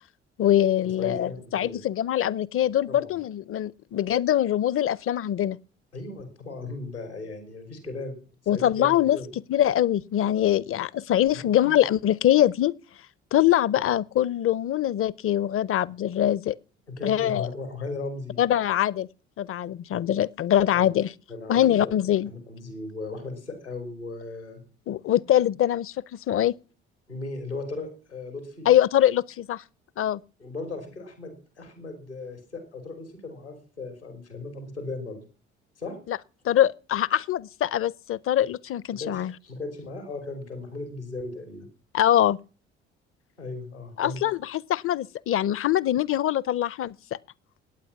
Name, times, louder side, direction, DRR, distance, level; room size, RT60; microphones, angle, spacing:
voice 1, 0.4-5.6 8.5-9.2 9.5-12.7 13.3-16.6 17.0-17.5 18.4-19.1 19.4-21.1 21.5-22.3 24.9-26.6 28.7-29.6 30.0-30.2 36.1-36.2 36.4-39.3 41.9-42.4 44.0-46.9, left 11 dB, 40° left, 0.7 m, -23 dB
voice 2, 1.0-1.8 2.9-3.2 5.9-8.2 8.4-9.3 11.3-11.8 16.9-18.4 20.7-20.9 21.3-21.9 22.3-24.6 27.1-28.7 30.4-35.2 35.8-36.0 38.9-41.7 43.4-44.2, left 3 dB, 90° left, 3.7 m, -37 dB
22.5 x 9.1 x 5.9 m
figure-of-eight pair, 45°, 33 cm